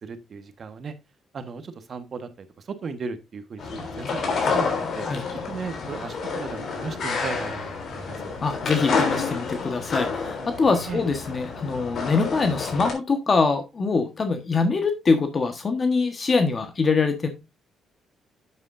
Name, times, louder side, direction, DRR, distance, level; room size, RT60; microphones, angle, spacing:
voice 1, 0.0-0.9 1.3-5.1 5.5-8.3 10.9-11.0, right 5 dB, 50° right, 10 dB, 1.4 m, -36 dB
sound 1, 3.6-12.9, left 4 dB, 60° left, 3.4 m, -29 dB
voice 2, 8.4-17.3, left 4 dB, 40° left, 7 dB, 1.4 m, -23 dB
9.6 x 8.1 x 2.6 m, 0.23 s
cardioid pair, 90°, 0 cm